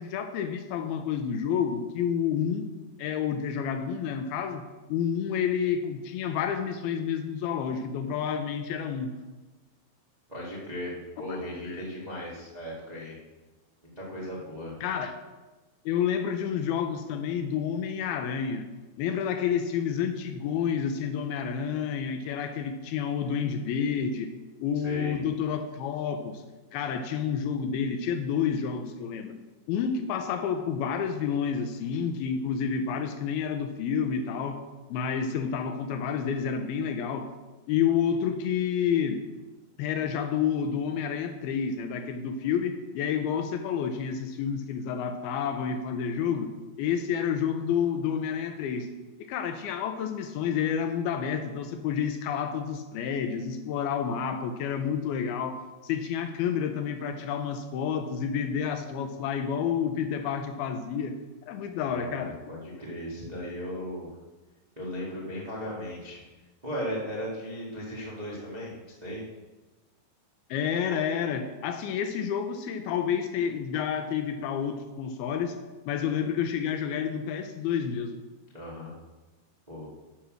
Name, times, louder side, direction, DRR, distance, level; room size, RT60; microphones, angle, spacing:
voice 1, 0.0-2.7 3.0-4.6 4.9-9.1 11.7-11.8 14.8-15.2 15.9-18.7 19.0-24.3 24.6-26.4 26.7-29.3 29.7-34.6 34.9-37.3 37.7-39.2 39.8-46.5 46.8-48.9 49.3-61.1 61.4-62.4 70.5-75.6 75.9-78.2, left 7 dB, 80° left, 7 dB, 2.4 m, -29 dB
voice 2, 10.3-13.1 13.8-14.7 24.8-25.2 61.6-62.2 62.5-64.1 64.7-66.2 66.6-68.7 69.0-69.2 78.5-78.9 79.7-79.9, equal, 60° right, -5 dB, 0.4 m, -36 dB
10.5 x 6.3 x 6.3 m, 1.2 s
omnidirectional pair, 4.8 m